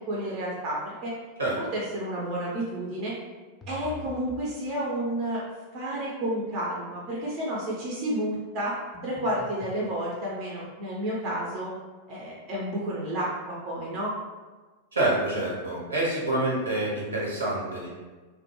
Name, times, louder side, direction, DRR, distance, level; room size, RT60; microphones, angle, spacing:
voice 1, 0.1-1.1 1.6-3.1 3.7-5.4 5.7-8.7 9.0-11.7 12.1-14.1, right 1 dB, 40° right, -5 dB, 0.5 m, -31 dB
sound 1, 3.6-4.5 8.9-9.8, left 3 dB, 20° left, 0.4 m, -44 dB
voice 2, 14.9-17.9, right 2 dB, 75° right, -5 dB, 0.8 m, -27 dB
2.2 x 2.1 x 2.9 m, 1.3 s
figure-of-eight pair, 90°, 0 cm